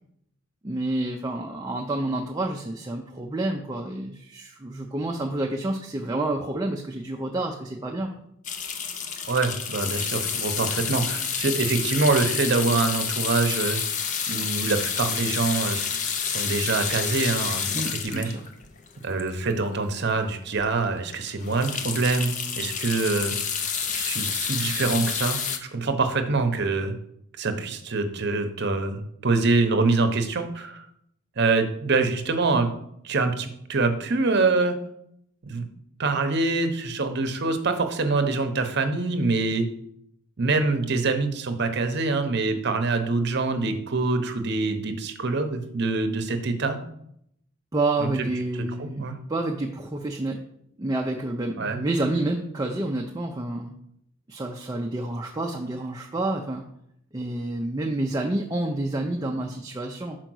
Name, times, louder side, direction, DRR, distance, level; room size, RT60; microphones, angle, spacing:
voice 1, 0.6-8.1 17.7-18.4 47.7-50.4 50.8-53.7 54.3-56.7 57.1-60.2, right 2 dB, 20° right, 1 dB, 0.4 m, -29 dB
sound 1, 8.4-19.7 20.2-20.3 20.6-20.7 21.1-25.6, left 7 dB, 35° left, 0.5 m, -29 dB
voice 2, 9.3-13.8 14.3-16.0 16.3-18.3 19.0-23.3 23.9-26.9 27.4-30.9 31.4-32.7 33.0-34.8 35.4-35.7 36.0-39.7 40.4-46.8 48.0-48.1 48.8-49.2 51.6-51.8, right 3 dB, 50° right, 7 dB, 0.8 m, -25 dB
5.1 x 4.5 x 6.1 m, 0.74 s
head